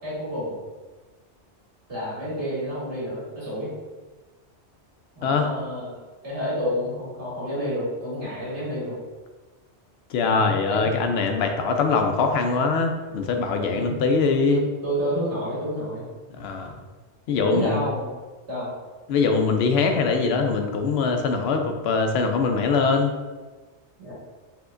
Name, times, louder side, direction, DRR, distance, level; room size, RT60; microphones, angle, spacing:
voice 1, 0.0-0.6 1.9-3.7 5.2-6.0 6.2-9.0 10.2-10.8 13.1-13.2 13.6-14.0 14.5-16.1 17.4-18.1 18.5-18.7 24.0-24.1, equal, 85° right, -7 dB, 2.0 m, -30 dB
voice 2, 10.1-14.6 16.3-16.7 17.3-17.8 19.1-23.1, left 4 dB, 70° left, 4 dB, 0.8 m, -22 dB
4.7 x 3.6 x 2.5 m, 1.3 s
omnidirectional pair, 1.2 m